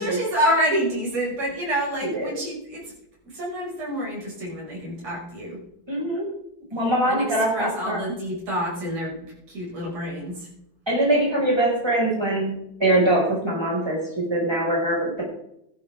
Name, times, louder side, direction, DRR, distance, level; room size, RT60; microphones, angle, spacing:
voice 1, 0.0-2.9 3.2-5.6 7.1-10.5, equal, 55° right, -4 dB, 7.4 m, -28 dB
voice 2, 2.0-2.3 5.9-6.3 6.7-8.0 10.9-15.2, right 1 dB, 5° right, -3 dB, 5.9 m, -23 dB
15.0 x 11.5 x 3.7 m, 0.77 s
omnidirectional pair, 3.5 m